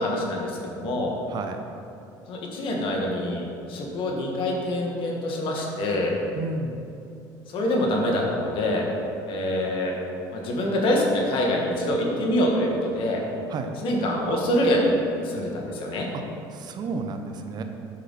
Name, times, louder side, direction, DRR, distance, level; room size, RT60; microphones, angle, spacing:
voice 1, 0.0-1.1 2.3-3.4 3.7-6.1 7.5-8.8 9.3-9.9 10.3-13.2 13.8-14.9 15.2-16.1, left 1 dB, 60° left, -1 dB, 1.6 m, -25 dB
voice 2, 1.3-1.6 6.3-6.8 13.5-13.7 16.1-16.2 16.5-17.6, right 3 dB, 45° right, 6 dB, 0.7 m, -32 dB
8.7 x 5.7 x 4.1 m, 2.7 s
supercardioid pair, 100°, 10 cm